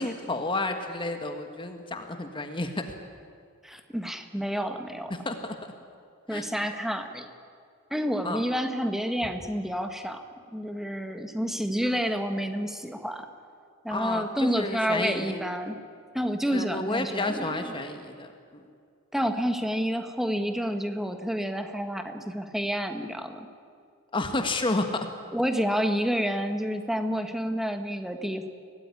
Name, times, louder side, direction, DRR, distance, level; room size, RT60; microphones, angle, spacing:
voice 1, 0.0-2.9 5.2-5.5 6.3-6.5 8.2-8.4 11.8-11.9 13.9-15.4 16.5-18.6 24.1-25.1, left 2 dB, 20° left, 6 dB, 1.5 m, -31 dB
voice 2, 3.6-5.1 6.3-7.3 7.9-10.2 10.5-13.2 13.8-15.8 16.1-17.5 19.1-23.5 25.3-28.5, equal, ahead, 6 dB, 1.5 m, -29 dB
24.0 x 18.0 x 9.9 m, 2.3 s
head